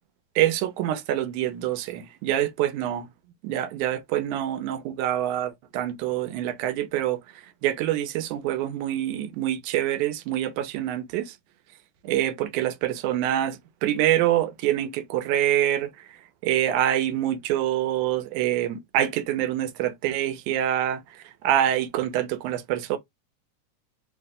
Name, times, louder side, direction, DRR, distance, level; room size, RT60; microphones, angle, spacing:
voice 1, 0.4-3.1 3.4-7.2 7.6-11.3 12.0-15.9 16.4-21.0 21.4-23.0, right 12 dB, 90° right, 2.1 m, -25 dB
4.8 x 2.1 x 3.5 m
omnidirectional pair, 3.4 m